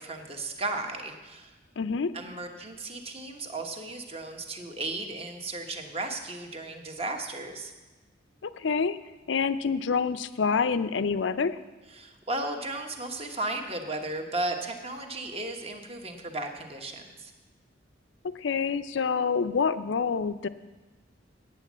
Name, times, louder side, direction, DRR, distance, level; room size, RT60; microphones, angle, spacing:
voice 1, 0.0-1.5 2.1-7.7 11.9-17.3, right 2 dB, 30° right, 4 dB, 1.1 m, -35 dB
voice 2, 1.8-2.1 8.4-9.0 9.3-11.6 18.4-20.5, left 5 dB, 75° left, 13 dB, 0.5 m, -27 dB
9.1 x 9.0 x 7.3 m, 1.2 s
head